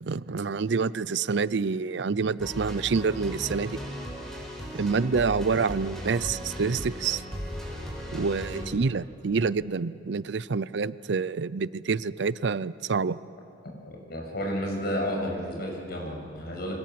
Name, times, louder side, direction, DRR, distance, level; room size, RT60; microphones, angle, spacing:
voice 1, 0.0-3.8 4.7-7.2 8.1-13.2, right 5 dB, 65° right, 18 dB, 0.5 m, -27 dB
sound 1, 2.4-8.6, equal, 5° left, 6.1 m, -37 dB
voice 2, 13.8-16.8, equal, 60° left, 1 dB, 6.9 m, -32 dB
27.5 x 25.0 x 7.6 m, 2.4 s
head